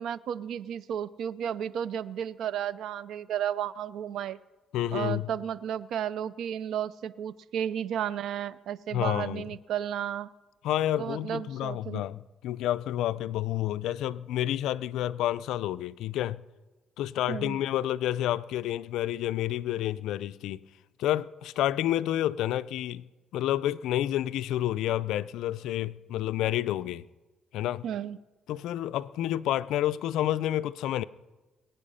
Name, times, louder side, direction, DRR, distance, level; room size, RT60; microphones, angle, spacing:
voice 1, 0.0-4.4 4.9-10.3 11.0-12.0 17.3-17.6 27.8-28.2, right 9 dB, 70° right, 0.5 m, -33 dB
voice 2, 4.7-5.3 8.9-9.4 10.6-16.4 17.0-20.6 21.0-23.0 23.3-27.0 27.5-27.8 28.5-31.0, left 13 dB, 85° left, 0.4 m, -29 dB
22.5 x 9.3 x 5.6 m
cardioid pair, 115°, 0 cm